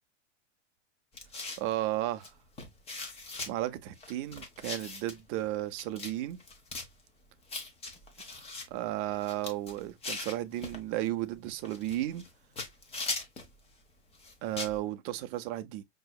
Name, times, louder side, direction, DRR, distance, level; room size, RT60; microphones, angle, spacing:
sound 1, 1.1-1.7 2.2-2.3 2.6-3.5 4.0-5.2 5.8-6.1 6.4-6.9 7.5-8.7 9.1-10.8 11.6-12.3 12.6-13.5 14.1-14.8, left 3 dB, 15° left, 0.8 m, -39 dB
voice 1, 1.6-2.3 3.5-6.4 8.7-12.2 14.4-15.8, right 14 dB, 35° right, 0.6 m, -34 dB
5.4 x 2.8 x 2.2 m
supercardioid pair, 140°, 37 cm